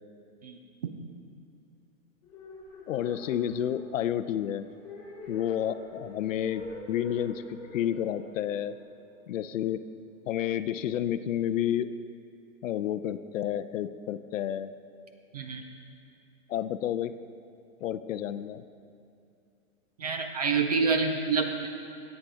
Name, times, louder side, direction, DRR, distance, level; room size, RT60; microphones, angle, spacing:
sound 1, 2.2-9.4, left 2 dB, 15° left, 2.6 m, -46 dB
voice 1, 2.9-4.7 5.3-8.8 9.3-9.8 10.3-11.9 12.6-14.7 16.5-17.1 17.8-18.6, left 10 dB, 65° left, 13 dB, 0.6 m, -30 dB
voice 2, 20.0-21.7, right 4 dB, 30° right, 5 dB, 0.4 m, -27 dB
10.5 x 8.4 x 4.9 m, 2.6 s
hypercardioid pair, 160°, 42 cm